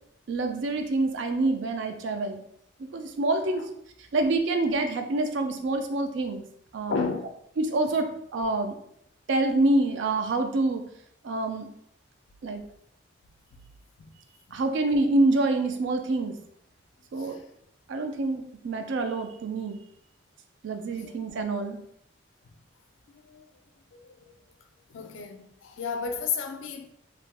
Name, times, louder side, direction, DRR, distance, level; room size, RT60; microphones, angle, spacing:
voice 1, 0.3-2.4 2.8-3.6 4.1-6.4 6.7-7.0 7.6-8.7 9.3-10.8 11.2-11.7 12.4-12.6 14.5-16.3 17.1-17.4 17.9-19.8 20.6-21.8, right 2 dB, 75° right, 0.4 m, -26 dB
voice 2, 6.9-7.3 14.0-14.1 17.2-17.4 21.0-21.1 23.1-23.5 24.0-24.3 24.9-26.9, left 5 dB, 80° left, 0.4 m, -33 dB
2.5 x 2.0 x 3.2 m
head